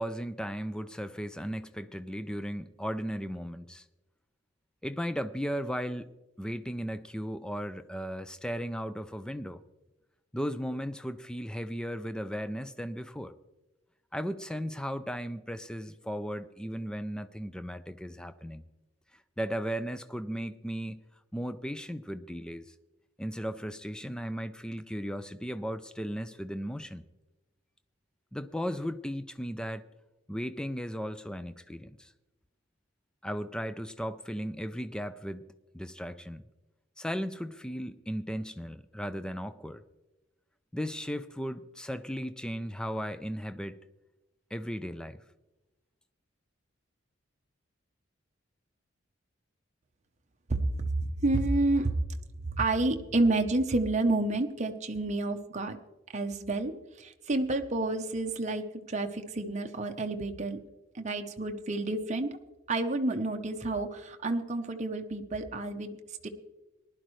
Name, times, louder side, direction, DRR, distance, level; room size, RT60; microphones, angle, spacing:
voice 1, 0.0-3.8 4.8-6.1 6.4-9.6 10.3-13.3 14.1-18.6 19.4-21.0 21.3-22.7 23.2-27.1 28.3-29.8 30.3-32.1 33.2-35.4 35.7-36.4 37.0-39.8 40.7-43.8 44.5-45.2, equal, 5° left, 0.4 m, -36 dB
voice 2, 50.5-51.9 52.5-55.8 56.1-56.7 57.0-60.6 60.9-62.4 62.7-66.3, right 2 dB, 35° right, 0.8 m, -29 dB
19.0 x 11.5 x 3.2 m
head